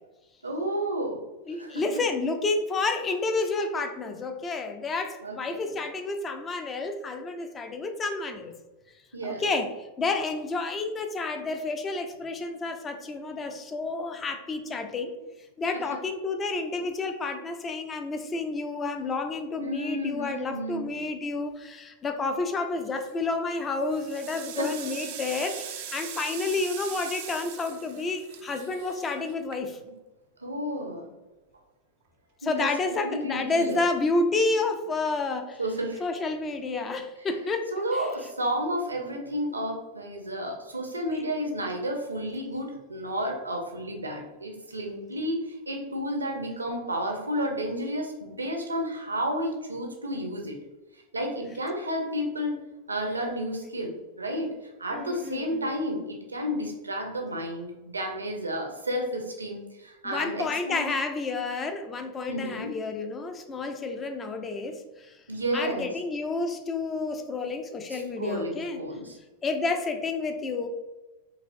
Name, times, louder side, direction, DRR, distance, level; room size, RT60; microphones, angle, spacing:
voice 1, 0.4-1.2 1.6-1.8 5.2-5.8 9.1-9.4 19.6-21.0 24.6-24.7 30.4-31.1 32.4-33.8 35.6-36.0 37.7-50.6 51.1-52.6 52.9-54.5 54.8-60.9 62.3-62.7 65.3-65.9 67.9-69.2, equal, 80° right, 2 dB, 0.7 m, -31 dB
voice 2, 1.5-8.5 9.2-9.7 10.0-15.1 15.6-29.8 32.4-35.6 36.0-38.1 41.1-41.2 54.9-55.7 60.0-65.2 65.5-68.8 69.4-70.7, left 3 dB, 20° left, 6 dB, 0.4 m, -30 dB
sound 1, 22.9-23.3 23.7-30.0, right 9 dB, 50° right, 0.4 m, -41 dB
4.2 x 3.1 x 2.5 m, 1.1 s
figure-of-eight pair, 90°, 0 cm